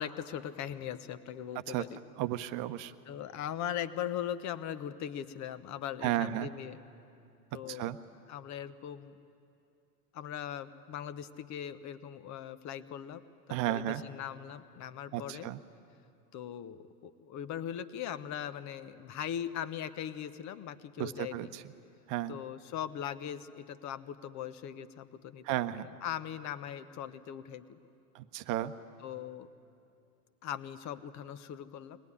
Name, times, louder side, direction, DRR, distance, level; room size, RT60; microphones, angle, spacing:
voice 1, 0.0-2.0 3.1-6.8 7.5-7.9 8.3-9.2 10.1-13.2 13.5-15.5 16.3-21.5 22.3-27.9 29.0-29.5 30.4-32.0, left 10 dB, 35° left, 13 dB, 1.1 m, -40 dB
voice 2, 2.2-3.0 6.0-6.5 7.7-8.0 13.5-14.0 15.1-15.6 21.0-21.6 22.1-22.4 25.4-25.9 28.1-28.7, right 14 dB, 40° right, 10 dB, 0.9 m, -33 dB
23.0 x 18.5 x 9.8 m, 2.6 s
hypercardioid pair, 100°, 48 cm